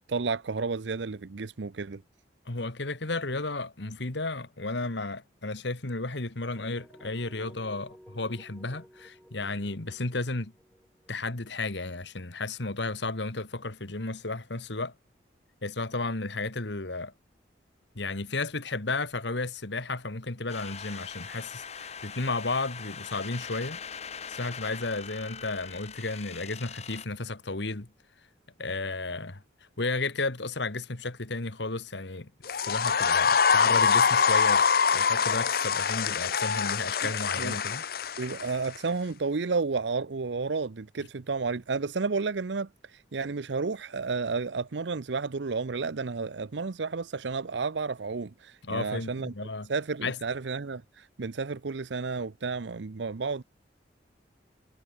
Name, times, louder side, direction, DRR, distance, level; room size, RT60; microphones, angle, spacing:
voice 1, 0.1-2.0 37.0-37.1 37.4-37.6 38.2-49.3 49.7-53.4, right 4 dB, 75° right, 0.7 m, -31 dB
voice 2, 2.5-10.5 11.1-14.9 15.6-17.1 18.0-23.8 24.3-27.9 28.6-29.4 29.8-32.3 32.6-34.6 34.9-37.8 48.6-49.7 50.0-50.2, left 3 dB, 75° left, 1.9 m, -33 dB
sound 1, 6.5-12.4, equal, ahead, 7.0 m, -55 dB
sound 2, 20.5-27.0, left 6 dB, 35° left, 2.1 m, -42 dB
sound 3, 32.4-38.8, left 6 dB, 50° left, 0.6 m, -24 dB
head